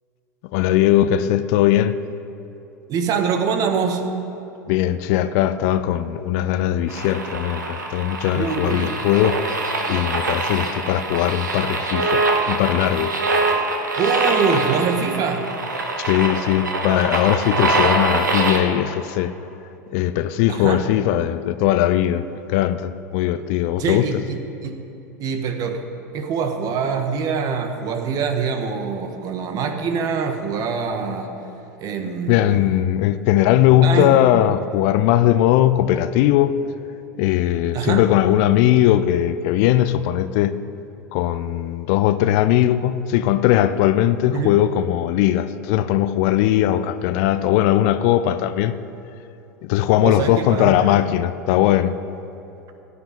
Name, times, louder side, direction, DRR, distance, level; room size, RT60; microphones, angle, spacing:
voice 1, 0.5-2.0 4.7-9.3 9.9-13.2 16.0-19.3 19.9-24.2 32.3-36.6 37.2-40.6 41.1-48.8 49.6-51.9, left 12 dB, 55° left, 0.6 m, -19 dB
voice 2, 2.9-4.0 8.3-8.9 10.5-10.6 14.0-15.4 20.5-20.8 23.8-24.8 25.2-25.8 26.1-31.3 31.8-32.8 33.1-33.2 33.8-34.2 37.7-38.0 44.3-44.5 50.0-50.8, right 6 dB, 40° right, 1.5 m, -24 dB
sound 1, 6.9-18.6, right 2 dB, 85° right, 1.4 m, -24 dB
15.5 x 5.8 x 8.7 m
figure-of-eight pair, 85°, 10 cm